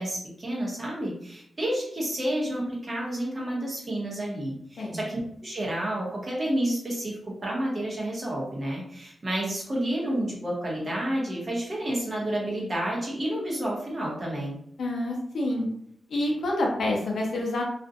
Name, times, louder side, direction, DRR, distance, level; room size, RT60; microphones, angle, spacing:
voice 1, 0.0-14.6, right 1 dB, 30° right, -4 dB, 0.8 m, -30 dB
voice 2, 14.8-15.7 16.1-17.6, left 1 dB, 65° left, 0 dB, 0.6 m, -27 dB
2.4 x 2.1 x 2.6 m, 0.68 s
wide cardioid pair, 170°, 0 cm